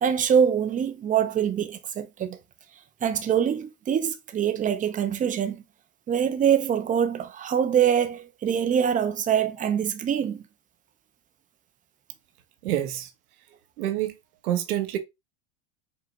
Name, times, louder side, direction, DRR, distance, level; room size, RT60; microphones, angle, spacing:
voice 1, 0.0-2.4 3.0-5.6 6.1-10.4, right 8 dB, 20° right, 0.5 m, -24 dB
voice 2, 12.6-13.1 13.8-14.1 14.4-15.0, right 12 dB, 85° right, 1.0 m, -27 dB
5.1 x 2.8 x 2.6 m
supercardioid pair, 110°, 43 cm